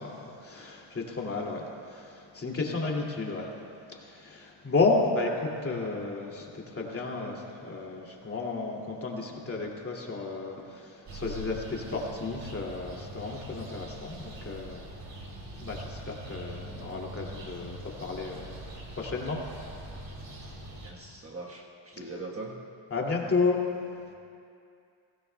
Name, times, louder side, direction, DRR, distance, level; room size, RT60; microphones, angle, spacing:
voice 1, 0.0-3.5 3.9-15.2 15.6-19.4 22.9-23.6, left 3 dB, 30° left, -1 dB, 2.5 m, -32 dB
sound 1, 11.1-20.9, right 1 dB, 45° right, 3.4 m, -43 dB
voice 2, 20.8-22.6, right 2 dB, 30° right, -1 dB, 1.4 m, -41 dB
23.0 x 17.0 x 2.3 m, 2.5 s
cardioid pair, 95°, 48 cm